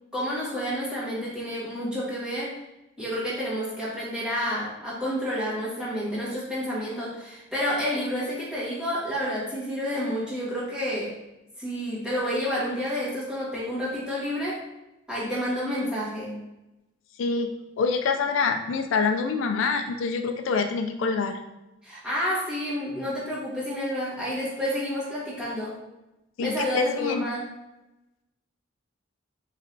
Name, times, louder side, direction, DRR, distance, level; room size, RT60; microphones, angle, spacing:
voice 1, 0.1-2.5 3.0-11.1 11.6-14.6 15.1-16.4 21.8-25.8 26.4-27.4, equal, 5° right, -9 dB, 1.4 m, -29 dB
voice 2, 17.2-17.5 17.8-21.4 26.4-27.2, left 4 dB, 75° left, 6 dB, 0.4 m, -26 dB
5.0 x 3.1 x 2.6 m, 0.97 s
head